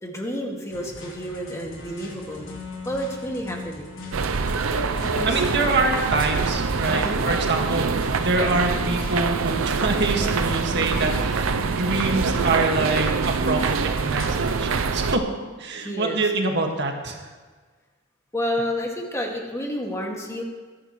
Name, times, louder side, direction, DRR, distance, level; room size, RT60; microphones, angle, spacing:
voice 1, 0.0-2.5 2.8-4.0 5.0-5.8 6.8-7.3 15.8-16.2 18.3-20.4, equal, 15° left, 0 dB, 2.1 m, -30 dB
sound 1, 0.7-14.8, left 2 dB, 70° left, 3.4 m, -40 dB
sound 2, 4.1-15.2, right 4 dB, 90° right, 0.6 m, -24 dB
voice 2, 5.2-15.3 15.6-17.2, right 3 dB, 60° right, 2 dB, 1.8 m, -25 dB
22.0 x 11.0 x 3.2 m, 1.4 s
head